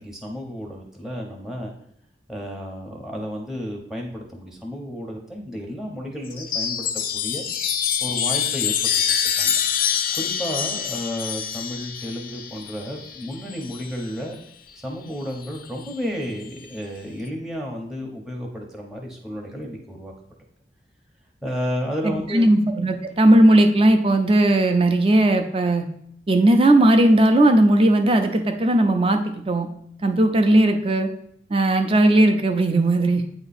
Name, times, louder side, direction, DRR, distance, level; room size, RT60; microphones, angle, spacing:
voice 1, 0.0-1.7 2.3-7.4 8.0-8.9 9.4-9.6 10.1-14.4 14.8-20.1 21.4-22.5, equal, 5° right, -1 dB, 0.8 m, -32 dB
Chime, 6.3-14.1 15.3-15.9, left 8 dB, 50° left, 0.5 m, -26 dB
voice 2, 22.0-25.9 26.3-29.7 30.0-31.1 31.5-33.2, right 1 dB, 30° right, 6 dB, 0.6 m, -17 dB
8.8 x 3.0 x 4.2 m, 0.69 s
head